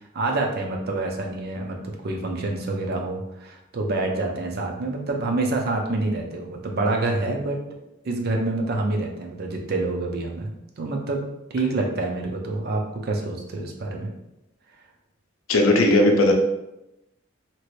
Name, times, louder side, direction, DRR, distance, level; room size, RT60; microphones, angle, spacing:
voice 1, 0.1-7.6 8.0-10.5 10.8-11.2 11.5-14.1, right 2 dB, 50° right, 1 dB, 0.5 m, -27 dB
voice 2, 15.5-16.3, left 1 dB, 80° left, 3 dB, 0.5 m, -17 dB
2.9 x 2.5 x 3.1 m, 0.89 s
head